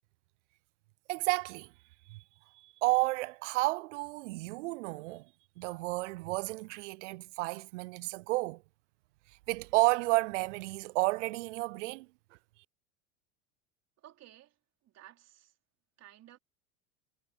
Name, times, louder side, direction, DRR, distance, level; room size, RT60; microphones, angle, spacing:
voice 1, 1.1-1.7 2.1-2.2 2.6-5.3 5.6-8.6 9.5-12.1, right 22 dB, 70° right, 0.5 m, -31 dB
voice 2, 14.0-14.6 14.8-15.6 16.0-16.4, right 13 dB, 45° right, 4.0 m, -55 dB
hypercardioid pair, 90°, 37 cm